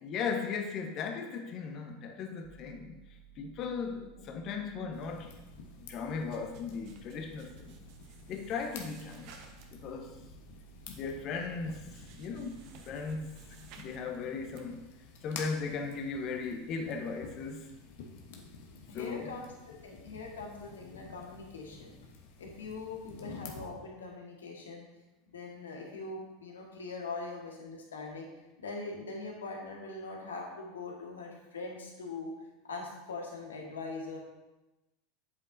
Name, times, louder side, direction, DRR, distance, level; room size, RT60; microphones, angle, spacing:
voice 1, 0.0-3.0 3.4-5.3 5.8-7.8 8.3-9.3 9.7-10.1 10.9-13.3 13.8-14.9 15.2-17.7 18.9-19.3, left 5 dB, 45° left, 4 dB, 1.1 m, -37 dB
sound 1, 2.4-13.9, right 9 dB, 20° right, 0.8 m, -57 dB
sound 2, 4.6-5.6 5.9-10.0 10.4-10.9 11.2-11.3 11.6-14.0 14.3-14.7, right 5 dB, 60° right, 1.1 m, -58 dB
sound 3, 4.9-23.6, left 5 dB, 65° left, 1.1 m, -51 dB
voice 2, 18.7-19.5 19.8-21.9 22.4-24.8 25.3-28.3 28.6-32.3 32.6-34.2, left 3 dB, 85° left, -1 dB, 1.7 m, -42 dB
8.4 x 7.7 x 2.7 m, 1.0 s
hypercardioid pair, 85°, 0 cm